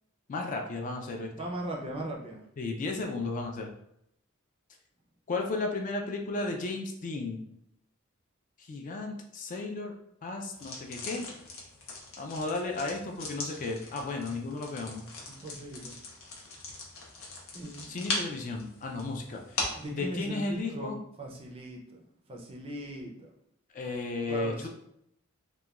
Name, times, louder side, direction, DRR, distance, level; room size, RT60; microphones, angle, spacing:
voice 1, 0.3-1.3 2.6-3.7 5.3-7.4 8.6-9.9 10.2-11.3 12.2-15.0 17.9-19.6 19.9-21.0 23.7-24.7, left 3 dB, 40° left, 2 dB, 0.3 m, -34 dB
voice 2, 1.4-2.4 15.3-16.0 17.5-18.1 19.8-23.3 24.3-24.7, right 1 dB, 30° right, 0 dB, 0.4 m, -39 dB
sound 1, 10.5-19.9, left 3 dB, 85° left, 0.7 m, -40 dB
2.9 x 2.2 x 2.3 m, 0.76 s
head